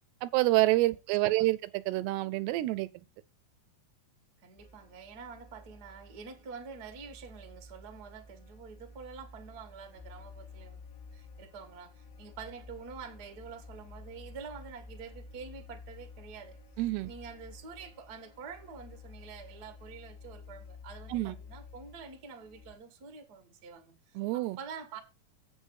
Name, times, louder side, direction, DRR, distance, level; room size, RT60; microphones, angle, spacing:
voice 1, 0.2-2.9 16.8-17.1 21.1-21.3 24.2-24.6, right 18 dB, 80° right, 2.6 m, -27 dB
voice 2, 0.9-1.5 4.4-10.8 11.1-16.6 17.0-25.0, right 5 dB, 60° right, 0.9 m, -47 dB
sound 1, 4.6-22.7, left 3 dB, 70° left, 2.8 m, -51 dB
8.0 x 6.1 x 6.3 m
omnidirectional pair, 4.8 m